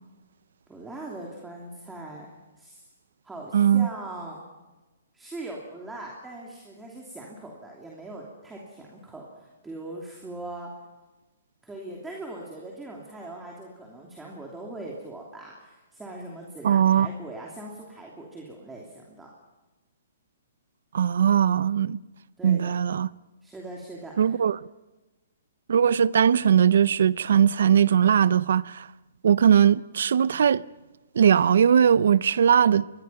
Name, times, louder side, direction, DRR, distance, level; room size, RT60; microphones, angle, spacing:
voice 1, 0.7-2.3 2.6-2.8 3.2-4.4 5.1-10.7 11.6-19.3 22.4-22.8 23.4-24.4, right 2 dB, 5° right, 3.0 m, -40 dB
voice 2, 3.5-3.9 16.6-17.1 20.9-22.0 22.4-23.1 24.2-24.6 25.7-28.9 29.2-30.6 31.2-32.8, right 8 dB, 70° right, 0.6 m, -20 dB
25.5 x 21.0 x 5.8 m
hypercardioid pair, 160°, 0 cm